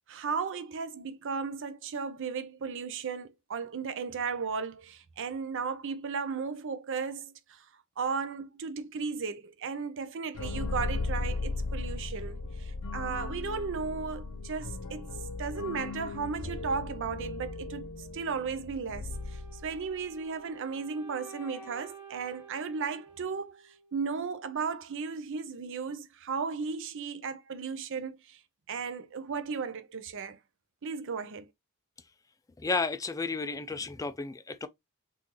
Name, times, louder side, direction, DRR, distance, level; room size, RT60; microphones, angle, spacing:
voice 1, 0.1-7.6 8.0-15.1 15.4-17.9 18.1-19.1 19.5-23.6 23.9-28.4 28.7-30.4 30.8-31.5, right 5 dB, 60° right, 0.6 m, -35 dB
sound 1, 10.3-20.0, left 3 dB, 85° left, 0.7 m, -37 dB
Wind instrument woodwind instrument, 19.1-24.1, right 4 dB, 10° right, 1.0 m, -50 dB
voice 2, 32.6-34.7, left 4 dB, 15° left, 0.4 m, -32 dB
3.7 x 2.6 x 2.9 m
head